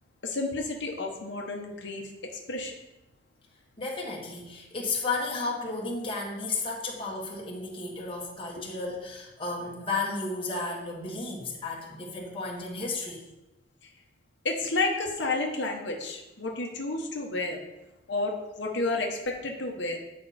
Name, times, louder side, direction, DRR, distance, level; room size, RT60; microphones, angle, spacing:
voice 1, 0.2-2.7 8.6-8.7 14.4-17.6 18.1-20.0, left 2 dB, 70° left, 1 dB, 1.0 m, -31 dB
voice 2, 3.8-13.2, left 3 dB, 30° left, -1 dB, 1.4 m, -33 dB
8.8 x 5.3 x 4.2 m, 1.0 s
head